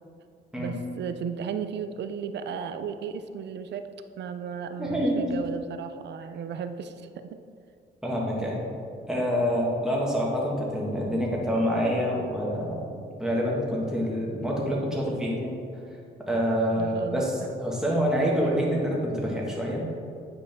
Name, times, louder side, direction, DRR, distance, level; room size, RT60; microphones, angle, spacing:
voice 1, 0.5-3.8 4.2-7.4 16.7-17.2, right 7 dB, 60° right, 9 dB, 0.5 m, -35 dB
voice 2, 4.8-5.2 8.0-8.6 9.1-12.8 13.2-15.6 16.3-20.0, equal, 5° right, -4 dB, 1.7 m, -27 dB
8.5 x 4.9 x 3.5 m, 2.5 s
cardioid pair, 90°, 20 cm